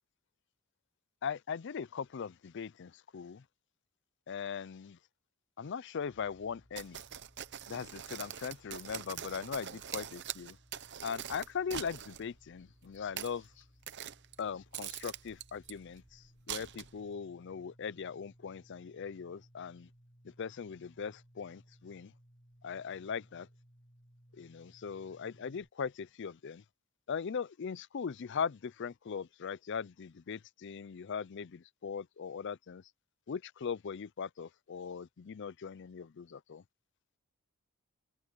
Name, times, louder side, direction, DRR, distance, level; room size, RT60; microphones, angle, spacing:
voice 1, 1.2-3.4 4.3-5.0 5.6-7.0 7.7-10.6 11.0-13.5 14.4-19.9 20.4-22.1 22.6-23.5 24.3-26.6 27.1-32.8 33.3-36.6, left 6 dB, 55° left, 0.4 m, -40 dB
sound 1, 6.1-25.7, equal, 20° left, 2.9 m, -63 dB
sound 2, 6.8-12.2 12.9-13.4 13.8-14.4 14.7-15.7 16.5-17.1, right 10 dB, 50° right, 0.8 m, -43 dB
head